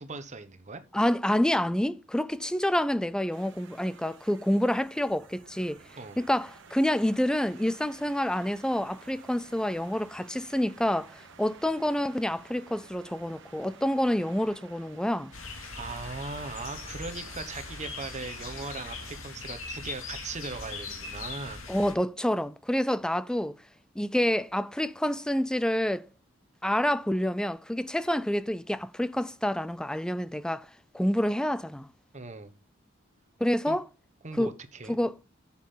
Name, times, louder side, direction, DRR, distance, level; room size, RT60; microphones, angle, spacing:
voice 1, 0.0-0.8 6.0-6.2 15.7-21.6 32.1-32.5 33.7-33.8 34.2-35.0, right 3 dB, 35° right, 1.2 m, -39 dB
voice 2, 0.9-5.8 6.2-15.3 21.7-23.6 24.0-26.1 26.6-30.7 30.9-31.9 33.4-33.8 34.3-34.5 34.9-35.1, left 1 dB, 5° left, 0.4 m, -28 dB
sound 1, 3.3-19.2, right 5 dB, 65° right, 1.3 m, -52 dB
sound 2, 15.3-21.9, left 4 dB, 90° left, 2.5 m, -40 dB
10.5 x 7.3 x 3.9 m
head